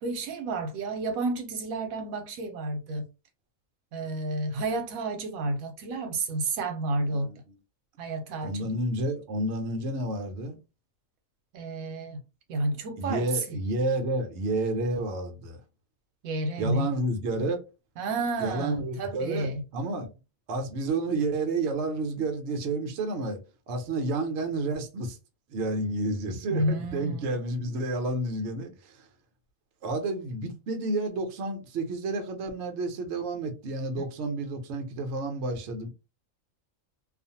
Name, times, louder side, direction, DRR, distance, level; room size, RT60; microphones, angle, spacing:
voice 1, 0.0-3.1 3.9-7.3 8.0-8.7 11.5-12.2 12.5-13.6 16.2-16.9 18.0-19.6 26.5-27.2 27.6-27.7 34.0-34.1, right 2 dB, 85° right, 1.1 m, -31 dB
voice 2, 8.4-10.6 13.0-15.6 16.6-17.6 18.4-20.1 20.5-25.2 25.5-29.1 29.8-35.9, right 2 dB, 60° right, 0.9 m, -30 dB
2.4 x 2.4 x 2.7 m
omnidirectional pair, 1.4 m